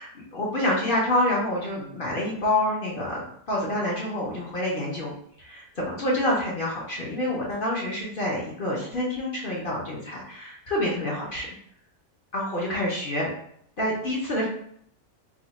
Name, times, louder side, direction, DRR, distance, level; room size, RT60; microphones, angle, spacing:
voice 1, 0.0-5.1 5.4-11.5 12.3-13.3 13.8-14.5, left 1 dB, 50° left, -5 dB, 0.6 m, -27 dB
2.8 x 2.3 x 4.0 m, 0.68 s
omnidirectional pair, 1.8 m